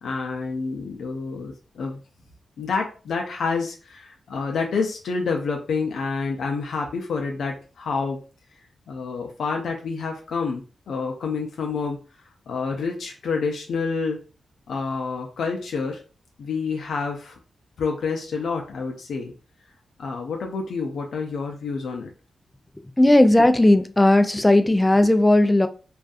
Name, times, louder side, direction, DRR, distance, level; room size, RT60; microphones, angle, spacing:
voice 1, 0.0-2.0 2.6-8.2 8.9-12.0 12.5-14.2 14.7-16.0 16.4-17.4 17.8-19.3 20.0-22.1, left 4 dB, 85° left, 0.4 m, -28 dB
voice 2, 23.0-25.7, left 1 dB, 15° left, 0.3 m, -16 dB
2.5 x 2.3 x 2.4 m
cardioid pair, 65°, 0 cm